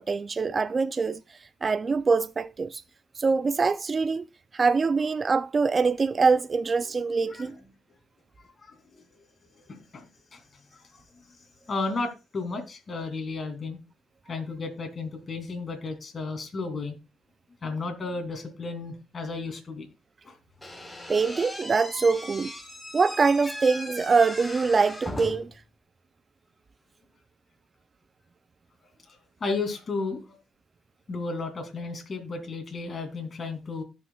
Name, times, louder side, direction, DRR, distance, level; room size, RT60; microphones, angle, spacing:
voice 1, 0.0-2.8 3.1-4.2 4.5-7.6 21.1-22.5 22.9-25.5, right 4 dB, 35° right, 0.3 m, -24 dB
voice 2, 8.6-9.0 9.6-10.1 10.3-10.4 10.7-10.8 11.7-13.8 14.3-17.0 17.6-19.9 20.2-20.3 29.1-30.4 31.1-33.8, left 3 dB, 40° left, 2.7 m, -33 dB
Slam / Squeak, 20.6-25.6, left 1 dB, 10° left, 4.1 m, -39 dB
16.5 x 6.2 x 2.3 m
cardioid pair, 90°, 0 cm